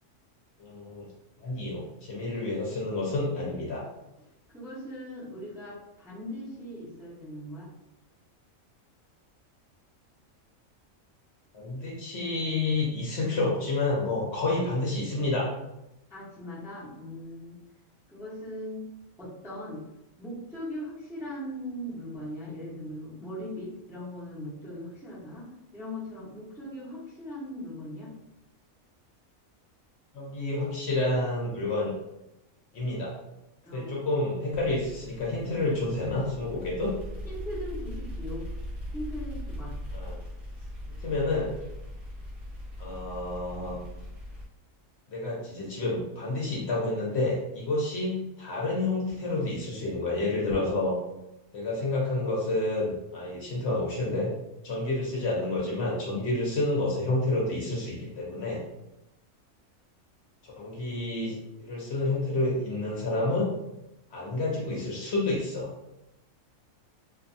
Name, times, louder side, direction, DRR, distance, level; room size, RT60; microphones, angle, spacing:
voice 1, 0.6-1.1 1.4-3.8 11.5-15.5 30.1-31.9 32.7-33.1 33.7-36.9 39.9-40.2 40.9-41.5 42.8-43.8 45.1-51.0 51.5-54.3 54.6-58.6 60.4-63.5 64.1-65.7, left 2 dB, 60° left, -4 dB, 0.9 m, -29 dB
voice 2, 4.5-7.7 16.1-17.6 18.1-18.9 19.2-19.8 20.2-28.1 33.7-34.0 37.2-38.5 38.9-39.7, left 1 dB, 5° right, -9 dB, 0.6 m, -39 dB
sound 1, 34.5-44.5, left 1 dB, 50° right, 0.8 m, -40 dB
2.5 x 2.2 x 2.6 m, 0.91 s
omnidirectional pair, 1.4 m